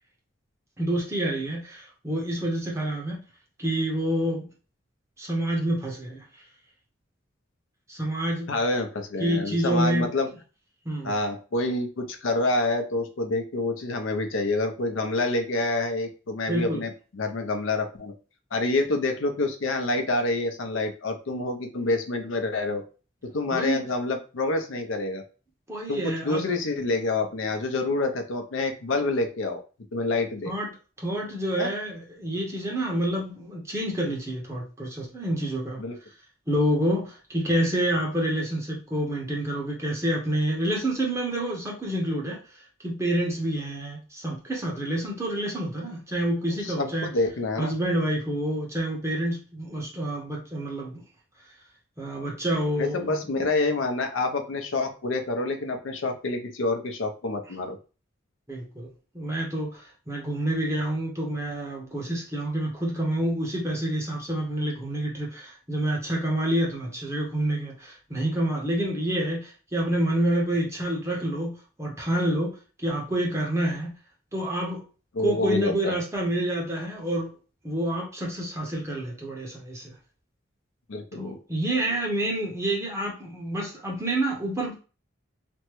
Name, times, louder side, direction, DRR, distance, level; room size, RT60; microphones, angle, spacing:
voice 1, 0.8-3.2 3.6-4.5 5.2-6.2 7.9-8.5 9.2-10.1 10.8-11.1 16.5-16.8 23.5-23.8 25.7-26.5 30.4-30.7 31.0-35.8 36.5-47.1 47.6-51.0 52.0-53.5 58.5-58.9 59.1-73.9 74.3-74.8 75.2-77.3 77.6-79.9 81.1-84.8, right 1 dB, 15° right, -2 dB, 0.8 m, -28 dB
voice 2, 8.5-10.3 11.0-18.1 18.5-22.8 23.3-25.2 25.9-29.6 29.9-30.5 31.6-31.7 35.8-36.0 46.6-47.7 52.8-57.8 75.1-75.9 80.9-81.4, left 2 dB, 85° left, 6 dB, 0.6 m, -27 dB
3.4 x 2.1 x 3.0 m, 0.35 s
head